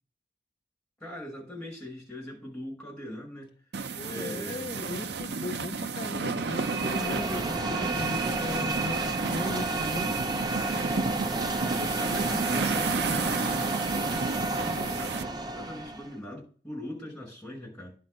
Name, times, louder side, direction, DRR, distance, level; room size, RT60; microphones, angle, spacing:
voice 1, 1.0-3.5 4.0-4.7 10.6-17.9, left 1 dB, ahead, 5.7 m, -41 dB
sound 1, 3.7-15.2, right 4 dB, 65° right, 0.6 m, -32 dB
voice 2, 3.9-10.4, left 2 dB, 30° left, 0.5 m, -38 dB
sound 2, 6.3-16.1, right 2 dB, 25° right, 0.7 m, -31 dB
10.5 x 4.4 x 6.4 m
head